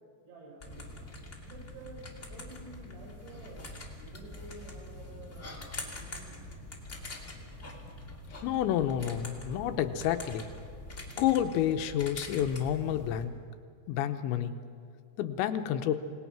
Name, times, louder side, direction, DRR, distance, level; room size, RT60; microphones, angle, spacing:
voice 1, 0.2-1.1 1.5-6.4, right 2 dB, 90° right, -1 dB, 8.2 m, -51 dB
sound 1, 0.6-13.2, left 2 dB, 25° left, 1.7 m, -44 dB
voice 2, 8.4-10.5 11.2-13.3 13.9-14.5 15.2-15.9, left 10 dB, 90° left, 8 dB, 3.1 m, -29 dB
28.0 x 19.5 x 6.0 m, 2.2 s
omnidirectional pair, 5.2 m